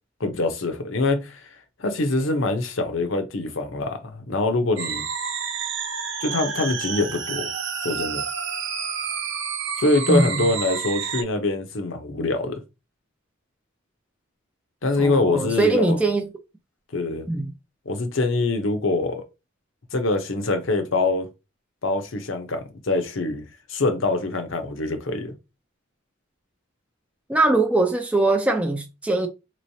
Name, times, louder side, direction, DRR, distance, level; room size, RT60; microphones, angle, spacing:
voice 1, 0.2-1.5 1.8-5.0 6.2-7.5 7.8-8.2 9.8-12.6 14.8-16.0 16.9-17.3 17.9-19.2 19.9-21.3 21.8-23.4 23.7-25.3, left 2 dB, 65° left, 0.8 m, -24 dB
sound 1, 4.8-11.2, right 6 dB, 65° right, 0.7 m, -29 dB
voice 2, 10.1-10.5 15.0-16.3 17.3-17.5 27.3-29.3, right 2 dB, 5° right, 0.4 m, -21 dB
3.8 x 3.1 x 2.7 m
head